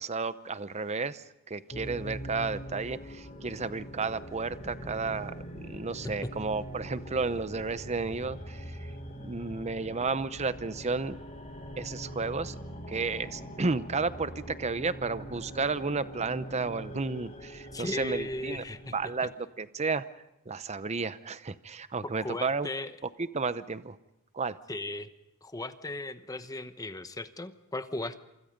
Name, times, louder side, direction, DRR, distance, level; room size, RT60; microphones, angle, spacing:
voice 1, 0.0-8.9 9.2-11.2 11.8-12.6 12.9-18.6 18.9-20.1 20.5-22.7 23.0-24.0 24.3-24.6, right 4 dB, 30° right, 14 dB, 0.7 m, -32 dB
sound 1, 1.7-19.2, equal, 30° left, 3.2 m, -43 dB
voice 2, 17.7-19.0 22.0-22.9 24.7-25.1 25.4-28.3, left 2 dB, 15° left, 11 dB, 0.9 m, -36 dB
27.0 x 25.0 x 5.3 m, 0.88 s
head